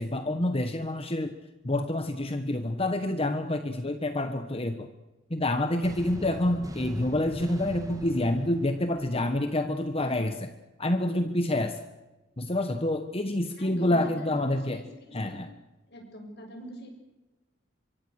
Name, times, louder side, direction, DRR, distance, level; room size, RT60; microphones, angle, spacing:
voice 1, 0.0-1.4 1.6-4.9 5.3-10.5 10.8-11.8 12.4-14.8 15.1-15.5, left 1 dB, 30° left, 7 dB, 1.3 m, -28 dB
sound 1, 5.8-9.8, equal, 20° right, 2.6 m, -40 dB
voice 2, 13.6-15.4 15.9-16.9, equal, 55° left, 4 dB, 7.0 m, -44 dB
26.0 x 23.5 x 6.6 m, 1.1 s
head